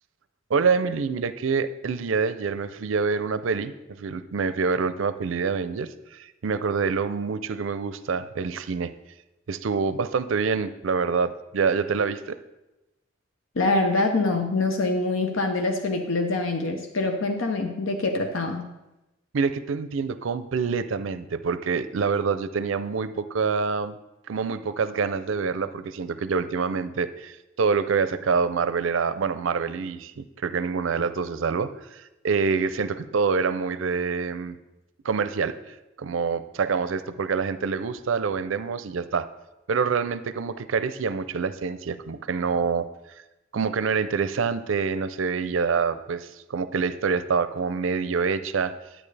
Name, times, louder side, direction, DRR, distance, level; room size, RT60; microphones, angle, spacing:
voice 1, 0.5-8.9 9.5-12.4 19.3-24.0 24.3-34.6 35.0-35.6 36.0-39.3 39.7-42.9 43.5-48.7, right 5 dB, 75° right, 13 dB, 0.5 m, -26 dB
voice 2, 13.6-18.7, left 2 dB, 80° left, 4 dB, 0.7 m, -25 dB
11.0 x 8.8 x 3.3 m, 0.97 s
head